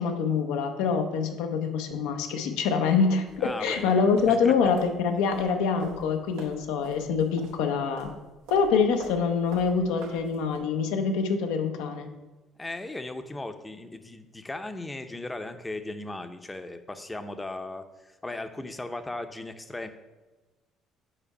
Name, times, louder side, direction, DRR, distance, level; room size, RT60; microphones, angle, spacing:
voice 1, 0.0-8.1 8.5-12.1, left 5 dB, 85° left, 5 dB, 0.7 m, -25 dB
sound 1, 3.3-10.6, right 3 dB, 90° right, 1.0 m, -46 dB
voice 2, 3.4-4.0 4.3-4.5 12.6-19.9, left 2 dB, 15° left, 8 dB, 0.6 m, -37 dB
5.0 x 4.4 x 5.5 m, 1.2 s
supercardioid pair, 75°, 0 cm